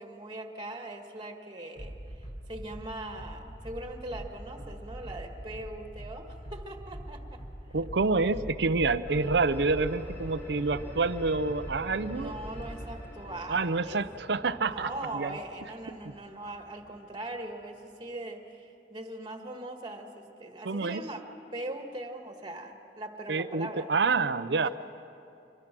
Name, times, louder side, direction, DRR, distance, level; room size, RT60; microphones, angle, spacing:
voice 1, 0.0-1.9 2.5-7.4 12.1-14.0 14.6-21.2 21.5-23.9 24.6-24.7, right 1 dB, 25° right, 4 dB, 1.8 m, -40 dB
sound 1, 1.8-13.0, equal, 35° left, 3.6 m, -43 dB
voice 2, 7.7-12.3 13.5-15.4 16.0-16.1 20.6-21.0 23.3-24.7, right 3 dB, 70° right, 13 dB, 0.7 m, -28 dB
sound 2, 9.1-17.9, equal, 10° left, 4.2 m, -46 dB
26.0 x 23.0 x 6.1 m, 2.8 s
head